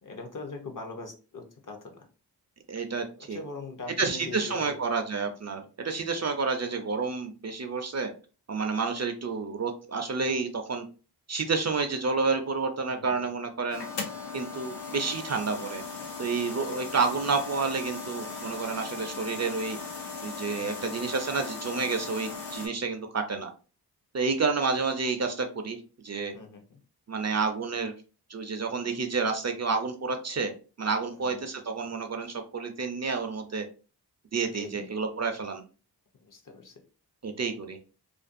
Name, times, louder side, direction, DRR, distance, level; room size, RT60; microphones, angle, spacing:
voice 1, 0.0-2.1 3.1-4.8 5.5-5.7 12.8-13.4 16.7-16.8 20.5-20.8 26.3-26.8 31.1-31.4 34.4-34.9 36.1-36.8, left 3 dB, 50° left, 4 dB, 0.7 m, -42 dB
voice 2, 2.7-3.4 4.0-8.1 8.5-10.8 11.3-13.8 14.3-15.8 16.2-19.8 20.2-23.5 24.1-25.8 26.0-26.3 27.1-27.9 28.3-30.5 30.8-33.7 34.3-35.6 37.2-37.8, right 4 dB, 40° right, 6 dB, 0.4 m, -29 dB
sound 1, 13.7-22.7, left 4 dB, 85° left, 0.7 m, -38 dB
2.5 x 2.2 x 2.5 m, 0.35 s
wide cardioid pair, 75°, 41 cm